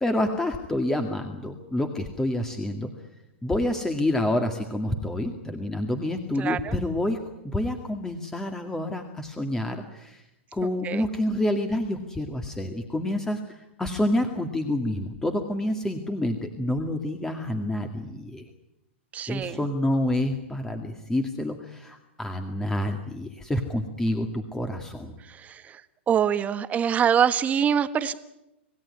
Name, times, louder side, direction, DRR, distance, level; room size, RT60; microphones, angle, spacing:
voice 1, 0.0-2.9 3.4-10.2 10.5-18.5 19.3-25.1, left 1 dB, 10° left, 5 dB, 2.1 m, -28 dB
voice 2, 6.4-6.8 10.8-11.1 19.1-19.6 25.3-25.8 26.1-28.1, right 8 dB, 20° right, 12 dB, 1.4 m, -24 dB
27.0 x 17.0 x 9.9 m, 0.93 s
hypercardioid pair, 125°, 7 cm